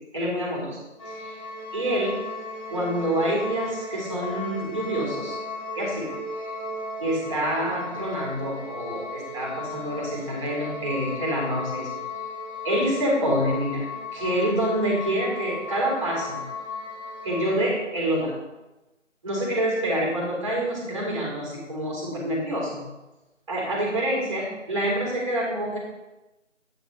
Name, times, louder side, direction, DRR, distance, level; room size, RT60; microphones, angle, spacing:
voice 1, 0.1-0.8 1.1-1.4 1.7-2.2 2.7-5.4 5.8-6.5 7.0-12.0 12.6-13.9 14.1-16.4 17.2-18.3 19.2-22.8 23.5-25.8, right 1 dB, 25° right, -3 dB, 3.6 m, -27 dB
sound 1, 1.0-17.5, left 2 dB, 25° left, 2.2 m, -36 dB
9.7 x 6.2 x 5.4 m, 1.0 s
figure-of-eight pair, 165°, 39 cm